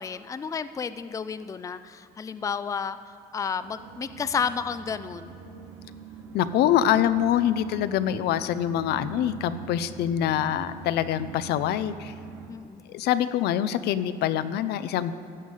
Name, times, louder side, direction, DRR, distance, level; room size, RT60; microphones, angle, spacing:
voice 1, 0.0-3.0 3.3-5.3 12.5-12.8, left 6 dB, 20° left, 13 dB, 0.4 m, -31 dB
sound 1, 3.6-12.5, right 4 dB, 90° right, 1.3 m, -44 dB
voice 2, 6.3-12.1 12.9-15.1, left 10 dB, 75° left, 12 dB, 0.5 m, -25 dB
14.0 x 8.1 x 5.5 m, 2.8 s
cardioid pair, 110°, 17 cm